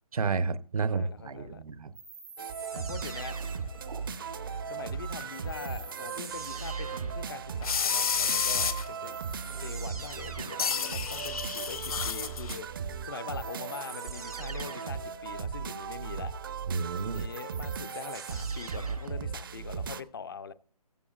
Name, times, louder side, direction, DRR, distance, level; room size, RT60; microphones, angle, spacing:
voice 1, 0.1-1.9 16.7-17.3, right 4 dB, 65° right, 0.9 m, -31 dB
voice 2, 0.9-1.6 2.7-3.4 4.7-9.2 9.6-16.3 17.0-20.5, left 6 dB, 35° left, 0.5 m, -43 dB
sound 1, 1.9-4.0 5.5-7.3 8.6-8.7 9.0-10.9 13.3-15.1 16.8-19.2, right 4 dB, 80° right, 3.0 m, -45 dB
sound 2, 2.4-20.0, right 6 dB, 35° right, 0.6 m, -37 dB
sound 3, 3.7-4.9 5.2-5.3 5.7-5.8 6.3-6.4 7.1-7.4 7.6-9.0 9.5-9.7 10.1-10.2 10.6-12.6, left 6 dB, 65° left, 1.0 m, -31 dB
15.0 x 14.5 x 2.3 m
hypercardioid pair, 160°, 20 cm